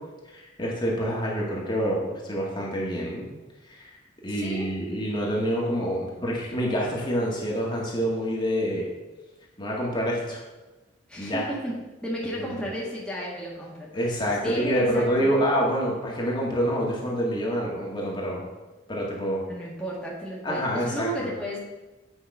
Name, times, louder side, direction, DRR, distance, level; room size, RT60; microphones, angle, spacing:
voice 1, 0.3-3.3 3.7-3.9 4.2-8.9 9.6-10.4 11.2-11.5 12.4-12.5 13.9-18.4 18.9-19.4 20.4-21.3, equal, 25° left, -3 dB, 1.6 m, -27 dB
voice 2, 4.3-4.7 11.1-11.7 12.0-14.1 14.4-15.3 19.5-21.6, right 1 dB, 5° left, -6 dB, 1.5 m, -33 dB
8.4 x 5.2 x 5.3 m, 1.1 s
head